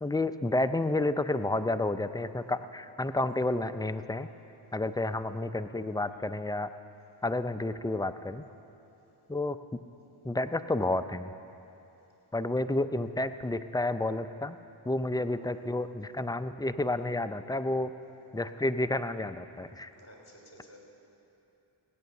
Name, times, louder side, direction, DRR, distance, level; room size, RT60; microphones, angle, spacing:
voice 1, 0.0-4.3 4.7-6.7 7.2-8.4 9.3-9.6 10.2-11.4 12.3-14.6 14.9-17.9 18.3-19.9, left 2 dB, 10° left, 10 dB, 0.4 m, -30 dB
voice 2, 20.0-20.9, equal, 30° left, -1 dB, 3.8 m, -53 dB
17.0 x 9.0 x 7.1 m, 2.9 s
cardioid pair, 60°, 48 cm